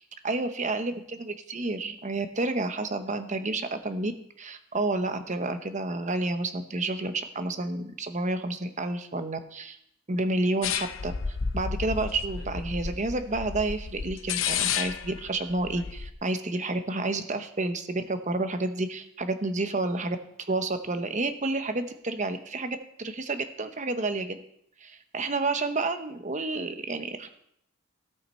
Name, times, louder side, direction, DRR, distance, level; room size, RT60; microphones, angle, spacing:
voice 1, 0.2-4.1 4.4-9.8 10.1-11.1 11.5-24.4 24.8-27.3, right 2 dB, 35° right, 8 dB, 0.9 m, -30 dB
sound 1, 10.6-16.1, left 6 dB, 65° left, 0.6 m, -32 dB
16.5 x 5.7 x 4.4 m, 0.73 s
head